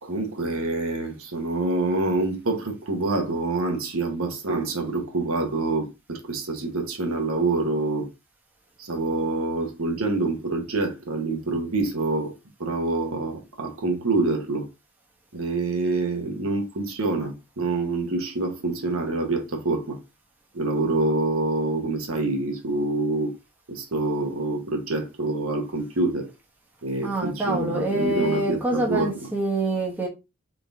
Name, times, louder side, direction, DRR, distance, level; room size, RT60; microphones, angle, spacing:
voice 1, 0.0-8.1 8.8-12.3 12.6-14.7 15.3-20.0 20.5-23.3 23.7-26.3 26.8-29.3, right 2 dB, 70° right, 1.3 m, -26 dB
voice 2, 27.0-30.1, right 2 dB, 10° right, 1.0 m, -26 dB
3.9 x 3.8 x 3.5 m
head